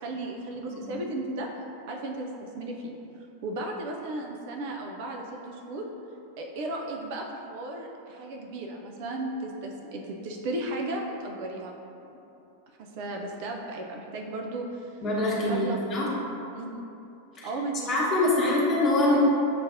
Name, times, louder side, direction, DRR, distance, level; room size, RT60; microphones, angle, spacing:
voice 1, 0.0-1.5 1.9-2.9 3.4-5.9 6.4-11.7 12.8-14.9 15.4-15.8 16.5-16.8 17.4-18.6, right 2 dB, 50° right, 1 dB, 0.4 m, -35 dB
voice 2, 15.0-16.1 17.4-17.5 17.9-19.2, left 2 dB, 30° left, -6 dB, 1.0 m, -25 dB
6.9 x 2.5 x 2.6 m, 2.8 s
figure-of-eight pair, 90°, 0 cm